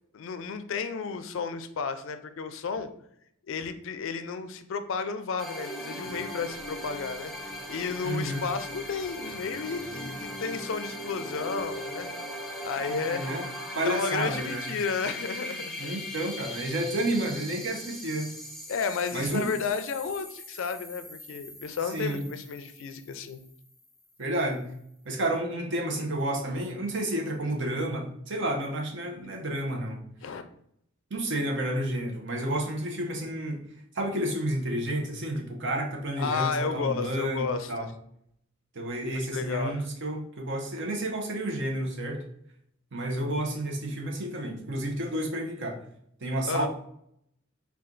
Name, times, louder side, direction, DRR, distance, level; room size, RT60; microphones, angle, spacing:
voice 1, 0.1-2.9 3.5-7.3 7.7-12.1 12.6-13.3 13.8-15.7 18.7-23.4 30.2-30.5 36.2-37.7 39.1-39.8 46.5-46.7, left 5 dB, 65° left, 10 dB, 0.4 m, -32 dB
sound 1, 5.4-23.9, equal, ahead, 0.5 m, -39 dB
voice 2, 8.0-8.4 12.8-13.5 13.7-14.7 15.8-18.3 19.1-19.5 21.9-22.2 24.2-24.7 25.0-30.0 31.1-33.6 33.9-37.9 38.7-42.2 42.9-45.8 46.2-46.7, right 1 dB, 60° right, 2 dB, 0.8 m, -30 dB
4.3 x 2.4 x 3.8 m, 0.71 s
head